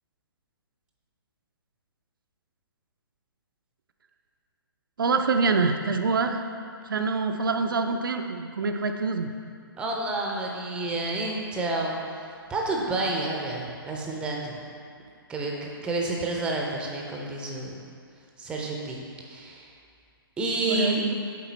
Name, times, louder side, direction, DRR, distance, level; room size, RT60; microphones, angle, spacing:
voice 1, 5.0-6.4 6.8-9.3 20.6-21.2, right 4 dB, 60° right, 5 dB, 0.4 m, -25 dB
voice 2, 9.8-14.5 15.3-17.7 18.4-19.7 20.4-21.2, right 2 dB, 10° right, -1 dB, 0.5 m, -30 dB
7.4 x 4.2 x 4.0 m, 2.2 s
figure-of-eight pair, 130°, 13 cm